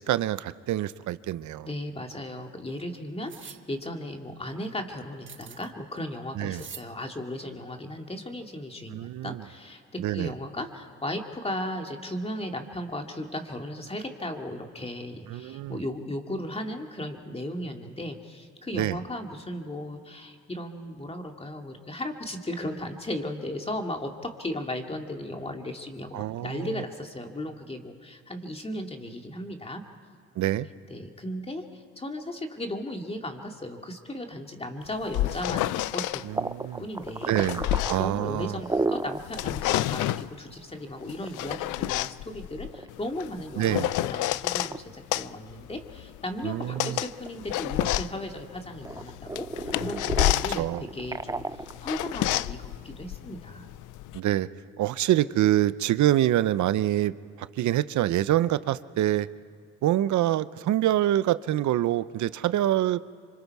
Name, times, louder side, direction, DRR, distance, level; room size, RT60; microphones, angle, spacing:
voice 1, 0.0-1.7 6.4-6.6 8.9-9.4 10.0-10.3 15.3-15.8 18.7-19.0 26.1-26.8 30.4-30.7 36.2-36.8 37.3-38.6 43.6-43.9 46.4-47.0 50.6-50.8 54.1-54.5 54.8-59.3 59.8-63.0, right 13 dB, 75° right, 16 dB, 0.7 m, -26 dB
voice 2, 1.6-29.8 30.9-36.2 36.8-37.4 38.0-50.7 50.9-51.4 51.8-53.7, left 1 dB, 20° left, 3 dB, 2.3 m, -36 dB
sound 1, 3.3-3.6 5.3-5.7 6.5-6.9, right 8 dB, 40° right, 0.9 m, -44 dB
sound 2, 34.8-36.2 37.0-38.8 39.2-40.3 41.1-44.7 45.1-54.2, left 16 dB, 90° left, 0.5 m, -30 dB
sound 3, 36.3-39.3 39.7-39.8 40.1-40.2 41.0-43.3 43.8-44.2 44.6-44.8 45.3-46.3 46.6-48.4 48.8-52.4, right 3 dB, 10° right, 0.5 m, -33 dB
26.5 x 24.5 x 4.8 m, 2.2 s
cardioid pair, 90°, 30 cm